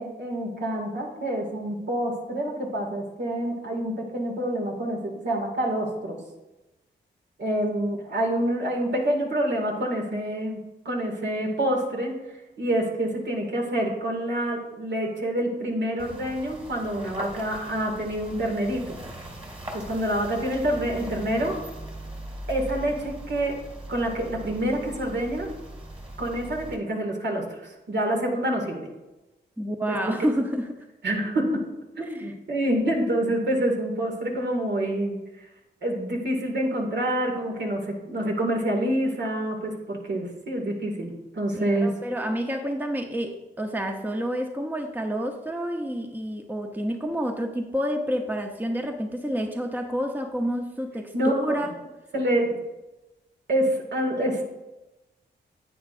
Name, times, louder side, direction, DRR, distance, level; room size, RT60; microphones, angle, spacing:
voice 1, 0.0-6.2 7.4-10.6 10.8-12.1 12.6-19.0 19.7-21.6 22.5-23.6 23.9-25.5 26.2-28.8 29.9-30.1 31.0-31.6 32.0-35.5 35.8-41.9 51.1-51.6 52.1-52.6 53.5-54.4, right 1 dB, 65° right, 0 dB, 2.2 m, -27 dB
sound 1, 16.0-26.8, right 1 dB, 30° right, 2.6 m, -40 dB
voice 2, 29.6-30.9 32.1-32.3 33.6-33.7 41.5-51.7, equal, 10° right, 4 dB, 0.9 m, -29 dB
10.0 x 8.7 x 2.6 m, 1.0 s
cardioid pair, 60°, 19 cm